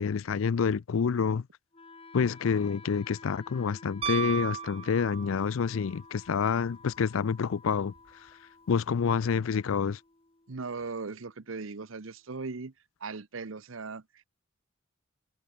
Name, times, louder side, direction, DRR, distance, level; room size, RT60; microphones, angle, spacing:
voice 1, 0.0-1.5 2.1-7.9 8.7-10.0, left 6 dB, 85° left, 0.4 m, -28 dB
Wind instrument woodwind instrument, 1.7-11.7, left 3 dB, 30° left, 2.3 m, -53 dB
Piano, 4.0-5.6 8.0-8.1, right 7 dB, 30° right, 0.4 m, -34 dB
voice 2, 10.5-12.7 13.0-14.2, right 4 dB, 80° right, 0.9 m, -38 dB
head